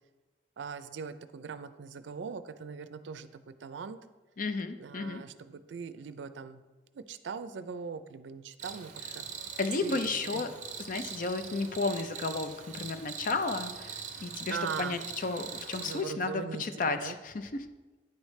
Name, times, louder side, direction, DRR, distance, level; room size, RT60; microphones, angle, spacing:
voice 1, 0.6-4.0 4.8-6.6 6.9-9.2 9.8-10.0 10.3-10.4 14.5-15.0 15.8-17.2, right 5 dB, 85° right, 12 dB, 0.4 m, -40 dB
voice 2, 4.4-5.2 9.6-10.5 10.9-17.7, left 3 dB, 45° left, 9 dB, 0.5 m, -33 dB
Cricket, 8.6-16.0, right 7 dB, 40° right, 0.6 m, -42 dB
9.3 x 4.9 x 3.2 m, 1.2 s
head